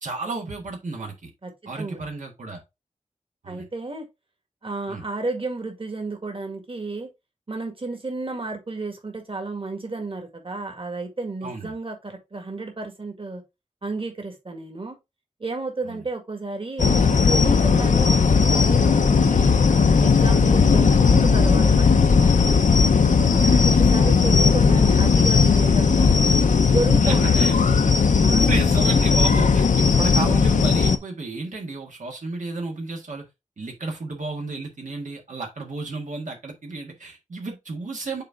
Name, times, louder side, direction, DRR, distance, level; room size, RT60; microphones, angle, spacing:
voice 1, 0.0-1.3 1.7-2.6 3.4-3.7 4.9-5.0 11.4-11.7 15.9-16.0 27.1-27.5 28.4-33.2 33.6-38.2, right 3 dB, 85° right, 1.7 m, -32 dB
voice 2, 1.4-2.0 3.5-4.1 4.6-7.1 7.5-13.4 13.8-15.0 15.4-18.2 18.5-19.5 20.0-22.6 23.2-26.4 26.7-27.6 28.2-28.5, right 3 dB, 45° right, 2.0 m, -32 dB
sound 1, 16.8-31.0, left 5 dB, 80° left, 0.7 m, -17 dB
6.6 x 4.2 x 3.5 m
wide cardioid pair, 70°, 13 cm